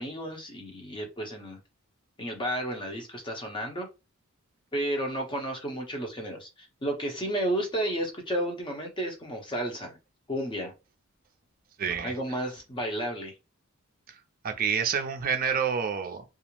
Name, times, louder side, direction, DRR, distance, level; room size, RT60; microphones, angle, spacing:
voice 1, 0.0-1.6 2.2-3.9 4.7-10.0 10.3-10.7 12.0-13.3, right 1 dB, 25° left, 0.6 m, -32 dB
voice 2, 11.8-12.1 14.4-16.2, right 7 dB, 40° right, 0.4 m, -28 dB
2.3 x 2.0 x 3.0 m
head